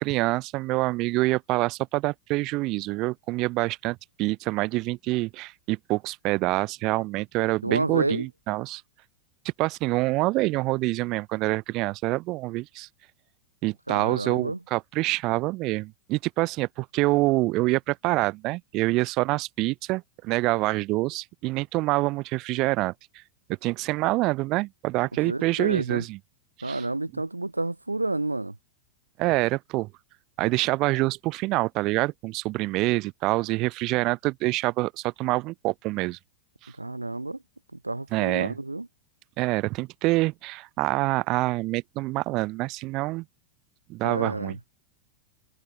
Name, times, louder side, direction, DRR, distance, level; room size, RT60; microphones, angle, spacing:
voice 1, 0.0-8.8 9.6-12.9 13.6-22.9 23.6-26.2 26.6-26.8 29.2-29.9 30.4-36.2 38.1-38.5 39.4-43.2 43.9-44.6, right 21 dB, 40° right, 0.7 m, -26 dB
voice 2, 7.6-8.3 13.9-14.6 25.3-26.0 26.6-28.5 36.8-37.4 37.8-38.9 44.0-44.6, right 2 dB, 85° right, 0.5 m, -29 dB
figure-of-eight pair, 90°, 0 cm